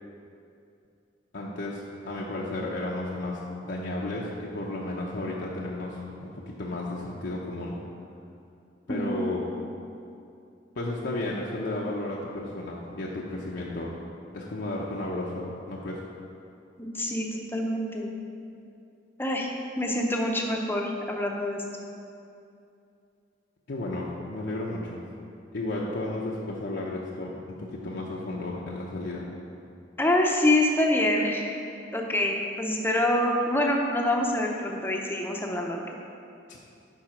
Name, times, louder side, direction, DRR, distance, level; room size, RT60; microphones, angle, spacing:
voice 1, 1.3-7.8 8.9-9.5 10.8-13.9 14.3-16.0 23.7-25.0 25.5-27.3 27.6-29.3 36.5-36.6, left 2 dB, 65° left, -4 dB, 0.7 m, -33 dB
voice 2, 8.9-9.3 16.8-18.1 19.2-19.5 19.8-21.6 30.0-31.6 31.9-35.8, left 1 dB, 10° left, 0 dB, 0.7 m, -26 dB
7.4 x 5.6 x 5.0 m, 2.6 s
head